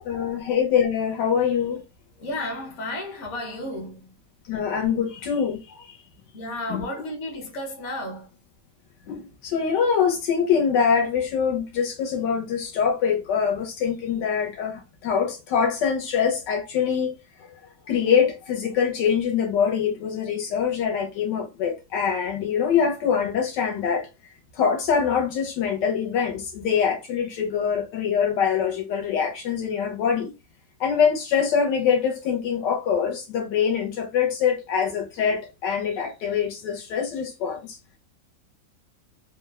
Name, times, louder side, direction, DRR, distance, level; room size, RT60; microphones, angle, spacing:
voice 1, 0.0-1.8 4.4-6.0 6.7-6.8 9.1-17.1 17.4-17.5 17.9-24.1 24.5-30.3 30.8-37.8, left 7 dB, 80° left, 1.2 m, -24 dB
voice 2, 2.2-4.2 6.3-8.3, left 1 dB, 50° left, 0.9 m, -33 dB
3.1 x 2.0 x 2.3 m
omnidirectional pair, 2.0 m